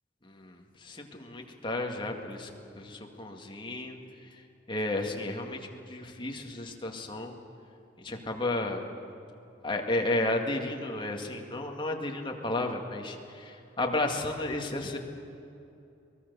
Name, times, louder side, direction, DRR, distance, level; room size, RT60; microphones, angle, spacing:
voice 1, 0.2-4.0 4.7-7.3 8.0-8.9 9.6-15.0, left 2 dB, 25° left, 2 dB, 2.0 m, -33 dB
24.0 x 20.0 x 6.9 m, 2.6 s
head